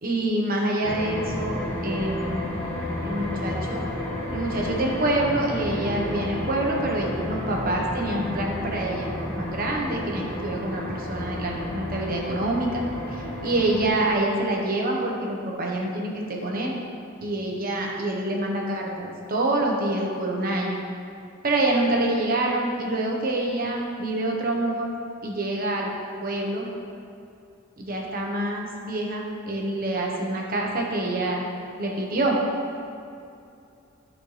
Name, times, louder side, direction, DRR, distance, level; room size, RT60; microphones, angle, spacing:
voice 1, 0.0-1.6 1.8-2.5 3.0-3.8 4.3-9.1 9.4-12.8 13.1-16.8 17.2-20.8 21.4-24.9 25.2-25.9 26.2-26.7 27.8-31.5 31.8-32.4, right 1 dB, 45° right, -1 dB, 1.1 m, -26 dB
sound 1, 0.8-13.9, left 1 dB, 10° left, 1.5 m, -31 dB
12.5 x 4.4 x 3.3 m, 2.6 s
head